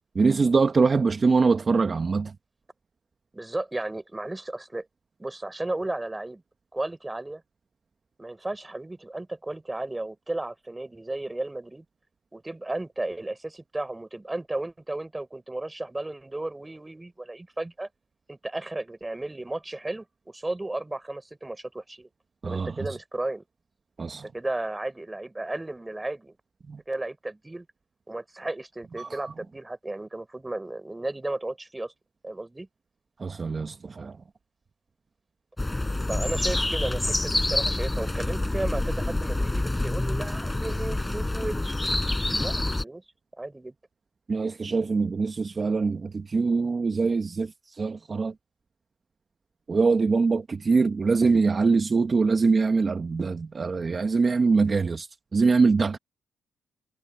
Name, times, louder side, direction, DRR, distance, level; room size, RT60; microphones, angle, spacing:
voice 1, 0.1-2.3 22.4-23.0 24.0-24.3 26.7-26.8 29.0-29.3 33.2-34.2 42.0-42.1 44.3-48.3 49.7-56.0, right 4 dB, 35° right, 1.2 m, -23 dB
voice 2, 3.3-4.9 5.2-6.4 6.7-7.4 8.2-11.8 12.3-17.9 18.3-22.1 22.4-23.4 24.2-26.4 26.9-27.7 28.1-31.9 32.2-32.7 36.1-41.7 42.4-43.0 43.4-43.7, right 2 dB, 15° right, 5.6 m, -34 dB
sound 1, 35.6-42.8, left 2 dB, 15° left, 7.1 m, -27 dB
cardioid pair, 90°, 0 cm